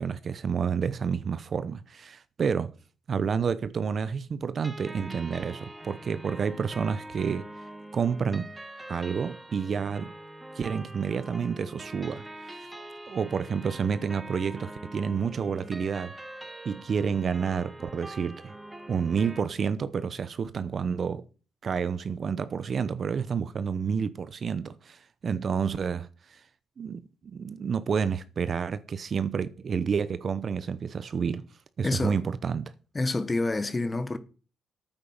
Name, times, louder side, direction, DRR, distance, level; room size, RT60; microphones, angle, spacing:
voice 1, 0.0-2.7 3.1-7.5 7.9-8.5 8.9-10.1 10.5-12.7 13.1-16.1 16.6-18.5 18.9-21.2 21.6-26.4 26.8-27.0 27.3-31.4 31.8-32.7, right 6 dB, 45° right, 0.8 m, -29 dB
sound 1, 4.6-19.4, right 1 dB, 15° right, 1.6 m, -44 dB
voice 2, 31.8-32.2 32.9-34.2, left 2 dB, 25° left, 1.4 m, -28 dB
9.1 x 8.8 x 7.2 m
cardioid pair, 90°, 0 cm